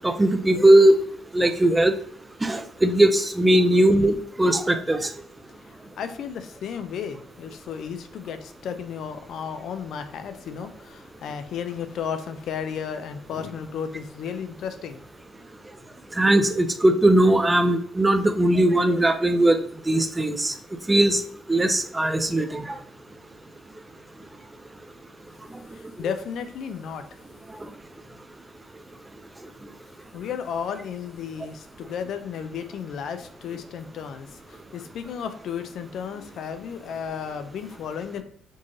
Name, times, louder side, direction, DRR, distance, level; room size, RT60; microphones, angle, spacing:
voice 1, 0.0-1.0 1.3-1.9 2.4-5.1 16.2-19.6 19.9-20.5 20.9-21.2 21.5-22.7, right 1 dB, 15° right, 7 dB, 0.5 m, -19 dB
voice 2, 5.6-15.0 25.7-27.2 30.1-38.2, left 7 dB, 75° left, 9 dB, 0.5 m, -34 dB
4.4 x 3.0 x 2.9 m, 0.64 s
cardioid pair, 90°, 0 cm